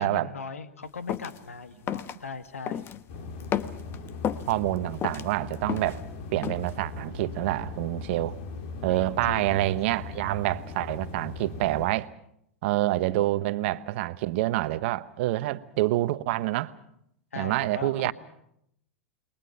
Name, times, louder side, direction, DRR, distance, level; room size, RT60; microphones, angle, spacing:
voice 1, 0.0-2.9 8.9-9.6 13.2-13.8 17.3-18.1, left 4 dB, 90° left, 1.7 m, -39 dB
sound 1, 1.1-1.4 1.9-2.1 2.7-3.0 3.4-4.5 4.9-6.0 6.4-6.7, left 9 dB, 35° left, 1.1 m, -31 dB
sound 2, 3.1-11.9, left 4 dB, 60° left, 3.4 m, -39 dB
voice 2, 4.5-6.0 6.3-8.4 8.8-12.1 12.6-16.7 17.4-18.1, right 16 dB, 60° right, 1.1 m, -27 dB
29.0 x 21.5 x 5.8 m
hypercardioid pair, 100°, 7 cm